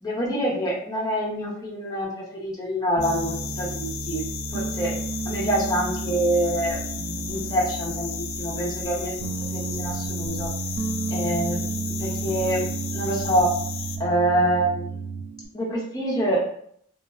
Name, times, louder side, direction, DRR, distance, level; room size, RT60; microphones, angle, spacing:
voice 1, 0.0-4.2 4.5-4.9 5.3-10.5 11.1-12.7 12.9-13.5 14.0-14.9 15.5-16.5, right 1 dB, 20° left, -5 dB, 0.5 m, -26 dB
sound 1, 3.0-14.0, left 8 dB, 65° left, 0.3 m, -35 dB
Piano, 3.0-15.5, right 4 dB, 70° right, 0.3 m, -32 dB
2.7 x 2.0 x 2.3 m, 0.67 s
head